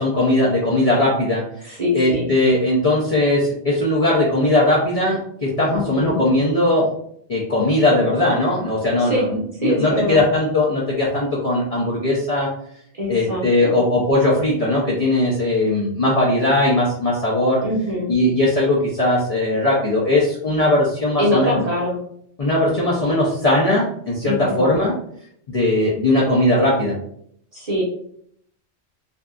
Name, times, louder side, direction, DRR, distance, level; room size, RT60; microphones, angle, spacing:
voice 1, 0.0-6.9 7.3-12.5 13.1-17.6 18.1-21.6 22.4-24.9 25.5-26.9, left 1 dB, 50° left, -6 dB, 0.4 m, -19 dB
voice 2, 1.8-2.3 5.7-6.2 9.1-9.2 9.6-10.2 13.0-13.8 17.6-18.1 21.2-22.0 24.2-24.7 27.5-27.8, left 1 dB, 40° right, -5 dB, 0.7 m, -23 dB
2.6 x 2.4 x 2.2 m, 0.67 s
omnidirectional pair, 1.2 m